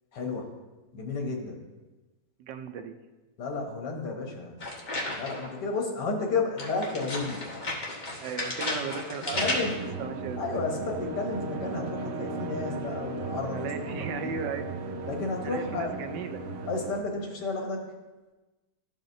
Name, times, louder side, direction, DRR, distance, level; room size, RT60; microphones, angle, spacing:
voice 1, 0.1-0.5 0.9-1.6 3.4-4.6 5.2-7.4 9.4-9.7 10.4-14.5 15.1-16.1 16.7-17.9, left 3 dB, 75° left, 1 dB, 1.8 m, -32 dB
voice 2, 2.4-3.0 8.2-9.6 10.0-10.6 13.5-14.7 15.4-16.7, right 6 dB, 85° right, 7 dB, 1.3 m, -36 dB
sound 1, 4.6-5.6 6.6-9.9, left 1 dB, 30° left, 1.3 m, -33 dB
sound 2, 9.3-17.0, right 3 dB, 65° right, 0.9 m, -36 dB
13.0 x 4.8 x 2.6 m, 1.2 s
omnidirectional pair, 1.8 m